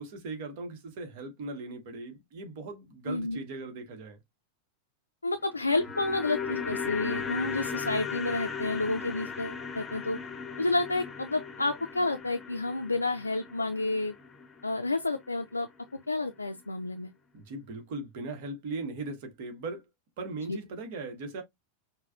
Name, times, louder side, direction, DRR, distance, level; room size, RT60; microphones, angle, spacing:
voice 1, 0.0-4.2 17.3-19.8 20.2-21.4, right 3 dB, 50° right, 1.2 m, -39 dB
voice 2, 3.1-3.4 5.2-10.2 10.6-14.1 14.6-15.7 16.1-17.1 20.5-20.6, left 2 dB, 80° left, 0.4 m, -30 dB
sound 1, 5.4-15.7 15.9-16.0, left 6 dB, 15° left, 0.9 m, -38 dB
5.9 x 2.2 x 2.4 m
figure-of-eight pair, 90°, 0 cm